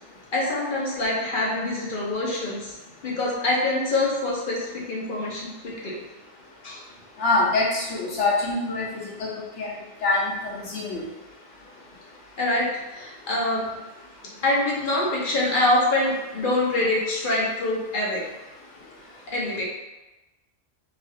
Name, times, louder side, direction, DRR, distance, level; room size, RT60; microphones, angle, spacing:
voice 1, 0.3-2.8 3.0-5.9 6.6-6.8 12.4-13.6 14.4-18.2 19.3-19.6, left 2 dB, 50° left, -5 dB, 0.8 m, -25 dB
voice 2, 7.2-9.3 9.6-9.7 10.0-11.1, left 2 dB, 65° left, -4 dB, 1.1 m, -25 dB
3.2 x 2.3 x 2.6 m, 1.0 s
omnidirectional pair, 1.3 m